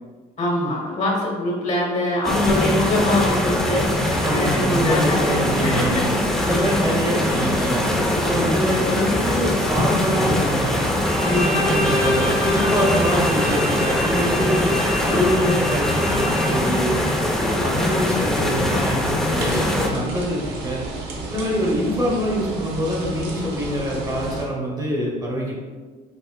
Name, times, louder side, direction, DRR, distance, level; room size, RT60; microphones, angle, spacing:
voice 1, 0.4-6.0 6.4-6.7 8.1-8.6 17.6-18.0, left 1 dB, 45° left, -3 dB, 1.1 m, -24 dB
sound 1, 2.2-19.9, left 1 dB, 5° left, 0.5 m, -22 dB
voice 2, 4.2-6.1 6.4-7.8 8.3-10.8 11.2-14.7 15.0-17.0 17.4-20.8 21.3-25.6, equal, 20° right, -3 dB, 0.8 m, -25 dB
Bowed string instrument, 11.0-16.9, left 1 dB, 60° right, 1.2 m, -26 dB
Autumn forest - leaves falling close to pond II (loopable), 19.3-24.5, right 2 dB, 80° right, 0.7 m, -32 dB
4.8 x 2.4 x 2.2 m, 1.4 s
cardioid pair, 110°, 17 cm